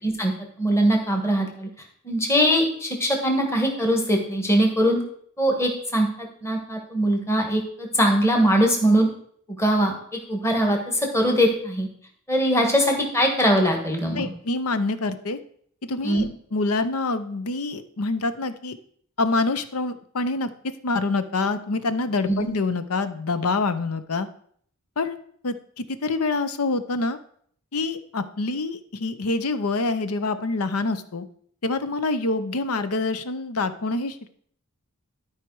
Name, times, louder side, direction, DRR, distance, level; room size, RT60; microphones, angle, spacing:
voice 1, 0.6-1.7 2.0-5.0 5.4-9.1 9.6-9.9 10.3-11.9 12.3-14.3 16.0-16.3 22.3-22.5, equal, 15° left, 1 dB, 1.5 m, -21 dB
voice 2, 14.1-15.4 15.8-18.8 19.2-20.5 20.8-24.3 25.0-25.2 25.4-27.2 27.7-31.3 31.6-34.3, left 3 dB, 80° left, 12 dB, 0.8 m, -26 dB
12.5 x 4.9 x 4.7 m, 0.62 s
head